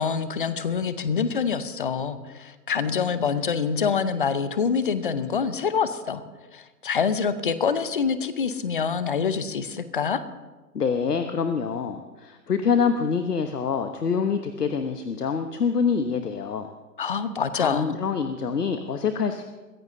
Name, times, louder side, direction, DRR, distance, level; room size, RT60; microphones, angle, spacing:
voice 1, 0.0-6.2 6.5-10.2 17.0-18.0, left 6 dB, 35° left, 13 dB, 0.7 m, -26 dB
voice 2, 10.7-16.7 17.5-19.4, left 6 dB, 70° left, 8 dB, 1.1 m, -26 dB
22.5 x 15.0 x 2.7 m, 1.2 s
figure-of-eight pair, 145°, 49 cm